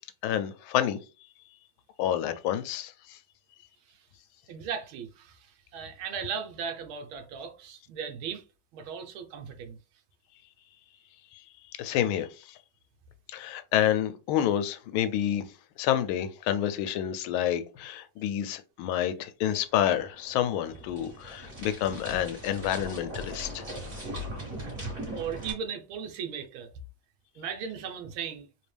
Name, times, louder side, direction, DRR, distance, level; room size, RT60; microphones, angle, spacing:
voice 1, 0.2-1.0 2.0-3.2 11.8-12.3 13.3-15.4 15.8-23.6, left 11 dB, 80° left, 1.3 m, -28 dB
voice 2, 4.5-8.4 8.7-9.8 25.1-26.7 27.3-28.5, right 7 dB, 75° right, 1.6 m, -37 dB
sound 1, 19.5-25.5, equal, 35° right, 2.5 m, -39 dB
4.3 x 2.8 x 3.3 m
omnidirectional pair, 2.3 m